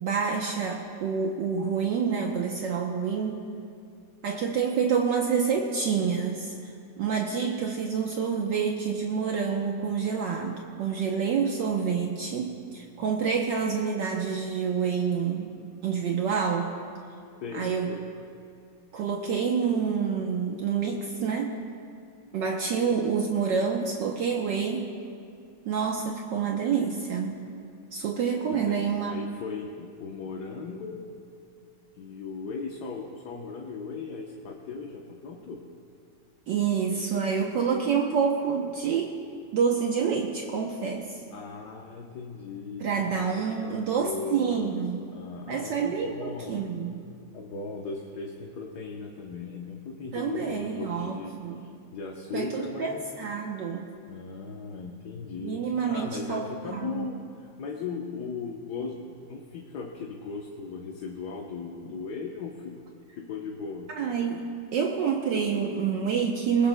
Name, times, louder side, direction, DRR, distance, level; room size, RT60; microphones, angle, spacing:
voice 1, 0.0-3.3 4.2-15.5 15.8-16.7 17.5-18.0 18.9-21.5 22.3-24.9 25.6-27.4 27.9-29.1 36.5-39.1 39.5-41.1 42.8-45.0 45.5-46.9 50.1-51.6 52.3-53.9 55.4-57.0 63.9-66.7, right 6 dB, 70° right, 1 dB, 1.4 m, -28 dB
voice 2, 17.4-18.1 28.5-31.0 31.9-35.6 41.3-44.8 45.1-46.7 47.3-53.0 54.1-55.6 55.9-62.8 63.1-63.9, left 4 dB, 60° left, 0 dB, 1.4 m, -38 dB
22.0 x 19.0 x 2.2 m, 2.3 s
omnidirectional pair, 2.2 m